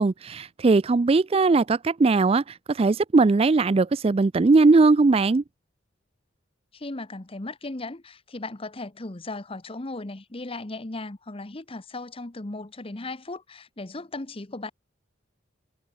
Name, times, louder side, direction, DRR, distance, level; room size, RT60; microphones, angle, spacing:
voice 1, 0.0-5.4, right 3 dB, 30° right, 0.4 m, -19 dB
voice 2, 6.7-14.7, left 2 dB, 30° left, 1.0 m, -36 dB
head